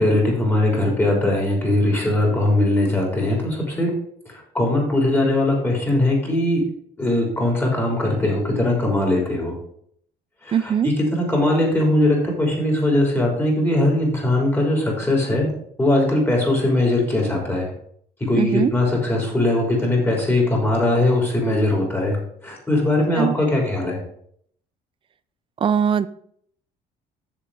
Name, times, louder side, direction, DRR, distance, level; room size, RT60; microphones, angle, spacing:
voice 1, 0.0-3.9 4.5-6.6 7.0-9.6 10.4-10.6 11.1-15.5 15.8-17.7 18.3-22.2 22.4-24.0, left 1 dB, 10° left, -2 dB, 3.6 m, -20 dB
voice 2, 10.5-10.9 18.4-18.7 23.2-23.4 25.6-26.1, right 8 dB, 30° right, 15 dB, 0.5 m, -20 dB
7.4 x 6.8 x 4.8 m, 0.66 s
cardioid pair, 110°, 17 cm